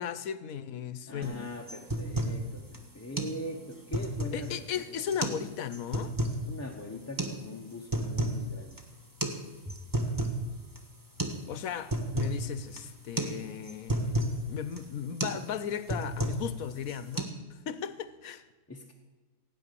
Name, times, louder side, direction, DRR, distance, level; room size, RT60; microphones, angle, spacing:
voice 1, 0.0-1.5 4.3-6.1 11.5-14.2 14.5-17.3 17.7-18.4, left 8 dB, 75° left, 14 dB, 1.2 m, -36 dB
voice 2, 1.1-5.1 6.5-8.8 9.6-9.8 11.2-11.3 18.7-18.9, left 1 dB, 10° left, 0 dB, 0.9 m, -41 dB
sound 1, 1.2-1.4 1.7-2.4 2.7-2.8 3.2-3.4 3.7-4.5 5.1-5.4 5.7-6.4 7.2-7.3 7.7-8.4 8.7-8.8 9.2-9.4 9.7-10.4 10.8-10.9 11.2-11.4 11.7-12.4 12.8-12.9 13.2-13.4 13.6-14.4 14.8-14.9 15.2-15.4 15.7-16.5 16.8-17.2, right 1 dB, 15° right, 1.5 m, -31 dB
16.5 x 9.6 x 6.9 m, 1.3 s
omnidirectional pair, 1.5 m